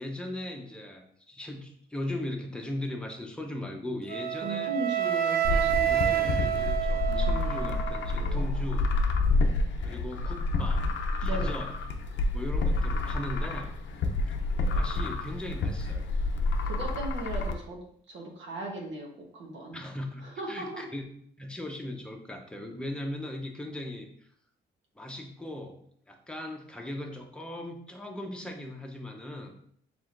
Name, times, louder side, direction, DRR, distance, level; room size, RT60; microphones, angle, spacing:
voice 1, 0.0-4.7 5.9-8.9 9.8-10.9 11.2-11.7 12.3-13.7 14.7-16.1 19.7-21.0 21.4-24.3 25.0-25.8 26.1-29.5, left 1 dB, 5° left, 2 dB, 0.8 m, -38 dB
Wind instrument woodwind instrument, 4.1-8.1, right 11 dB, 50° right, 0.5 m, -28 dB
voice 2, 4.4-6.3 6.9-7.9 8.2-8.7 11.2-11.5 16.6-19.8 20.2-20.9, right 2 dB, 70° right, 0 dB, 1.0 m, -38 dB
sound 1, 5.4-17.5, left 2 dB, 70° left, 0.6 m, -28 dB
4.9 x 3.5 x 2.5 m, 0.64 s
cardioid pair, 90°, 20 cm